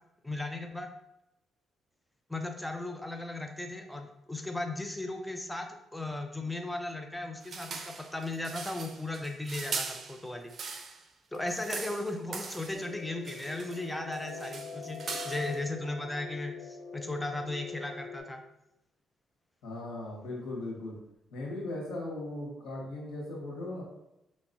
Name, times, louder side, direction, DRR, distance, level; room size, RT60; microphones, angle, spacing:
voice 1, 0.2-0.9 2.3-10.5 11.3-18.4, left 2 dB, 5° left, 4 dB, 0.5 m, -36 dB
sound 1, 7.4-11.0 11.3-12.9 13.2-13.9 14.1-15.6, right 4 dB, 50° right, 0.6 m, -40 dB
sound 2, 12.7-18.2, left 4 dB, 25° left, 1.3 m, -43 dB
voice 2, 19.6-21.0 21.3-23.8, left 2 dB, 85° left, -3 dB, 1.7 m, -38 dB
5.8 x 3.0 x 2.7 m, 0.89 s
cardioid pair, 90°, 0 cm